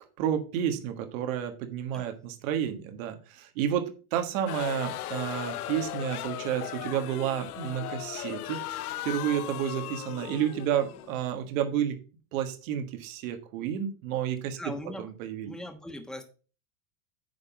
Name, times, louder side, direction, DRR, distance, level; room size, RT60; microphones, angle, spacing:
voice 1, 0.2-8.6 9.0-11.9 12.3-14.6 15.0-15.6, right 10 dB, 65° right, 6 dB, 1.5 m, -30 dB
sound 1, 4.5-11.6, left 14 dB, 85° left, 0.7 m, -37 dB
voice 2, 14.5-15.1 15.4-16.2, left 1 dB, ahead, 5 dB, 1.2 m, -39 dB
9.4 x 3.7 x 5.8 m, 0.37 s
supercardioid pair, 120°, 43 cm